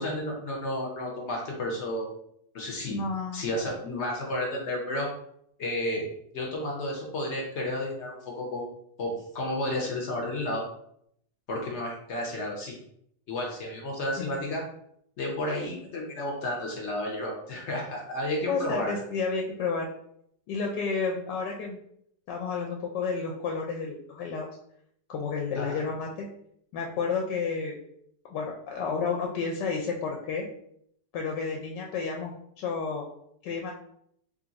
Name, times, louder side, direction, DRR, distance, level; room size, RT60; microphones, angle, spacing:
voice 1, 0.0-2.1 2.5-3.0 3.3-5.1 5.6-6.1 6.3-8.7 9.0-10.6 11.5-12.8 13.3-14.6 15.2-19.0 25.6-25.8, left 1 dB, 60° left, -1 dB, 0.7 m, -32 dB
voice 2, 2.9-3.4 14.2-14.5 18.5-19.9 20.5-21.8 22.3-24.5 25.1-26.3 26.7-27.8 28.2-30.5 31.1-33.0 33.4-33.7, left 5 dB, 75° left, 1 dB, 1.1 m, -31 dB
3.1 x 2.5 x 3.9 m, 0.71 s
omnidirectional pair, 1.9 m